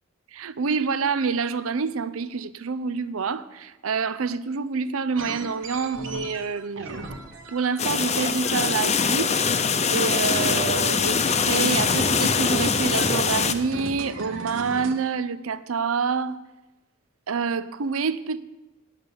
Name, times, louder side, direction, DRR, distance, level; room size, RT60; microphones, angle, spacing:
voice 1, 0.3-7.1 7.5-9.3 9.9-11.2 11.5-16.4 17.3-18.4, right 5 dB, 90° right, 0.6 m, -27 dB
sound 1, 5.2-9.2 9.5-14.9, right 2 dB, 70° right, 1.3 m, -37 dB
sound 2, 7.8-13.5, left 5 dB, 35° left, 0.7 m, -23 dB
9.6 x 8.7 x 7.1 m
head